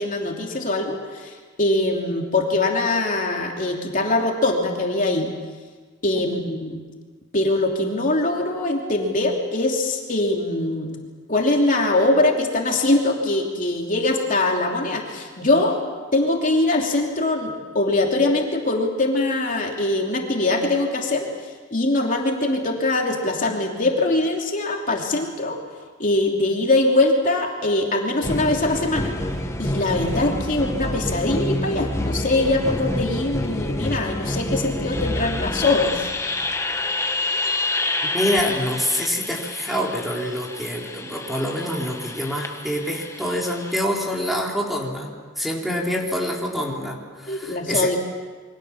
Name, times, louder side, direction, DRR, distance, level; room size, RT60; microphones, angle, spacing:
voice 1, 0.0-5.3 6.0-6.8 7.3-11.0 11.3-15.8 16.1-21.3 21.7-25.6 26.0-29.1 29.6-36.1 47.3-48.0, left 2 dB, 40° left, 0 dB, 3.0 m, -22 dB
sound 1, 28.2-43.8, left 1 dB, 15° left, 1.6 m, -28 dB
voice 2, 38.1-45.1 45.4-47.9, equal, ahead, -1 dB, 3.7 m, -26 dB
28.0 x 24.0 x 7.2 m, 1.5 s
head